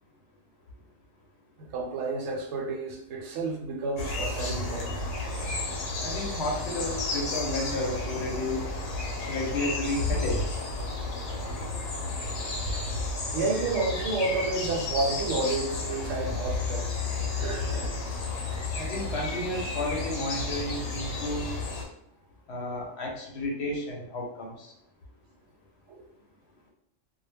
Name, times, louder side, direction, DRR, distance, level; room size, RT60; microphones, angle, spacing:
voice 1, 1.7-5.1 13.3-17.0 17.4-17.9 25.9-26.0, right 3 dB, 75° right, 0 dB, 0.9 m, -30 dB
sound 1, 4.0-21.9, left 3 dB, 90° left, 1.0 m, -32 dB
voice 2, 6.0-8.7 9.3-10.6 18.8-21.6 22.5-24.7, left 1 dB, 65° left, -1 dB, 0.9 m, -32 dB
2.2 x 2.0 x 3.3 m, 0.76 s
omnidirectional pair, 1.3 m